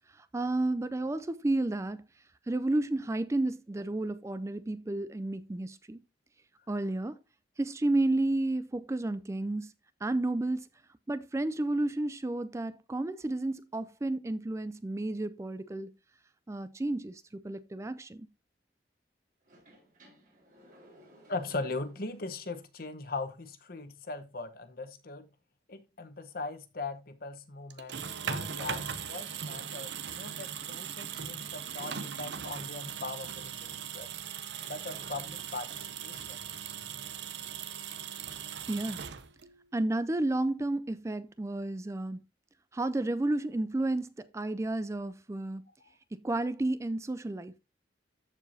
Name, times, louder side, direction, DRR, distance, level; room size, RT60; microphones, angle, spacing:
voice 1, 0.1-2.0 2.5-6.0 6.7-7.2 7.6-9.7 10.0-10.7 11.1-15.9 16.5-18.3 38.7-39.0 39.7-42.2 42.7-45.6 46.1-47.5, right 2 dB, 15° right, 0.3 m, -31 dB
sound 1, 19.4-22.3 22.8-22.9 28.2-32.6 33.7-33.8 34.5-35.7, right 1 dB, 50° right, 4.2 m, -58 dB
voice 2, 21.3-25.3 25.7-34.1 34.7-36.4, left 3 dB, 55° left, 1.0 m, -40 dB
sound 2, 27.7-39.6, right 8 dB, 80° right, 0.6 m, -39 dB
13.5 x 4.7 x 2.7 m
head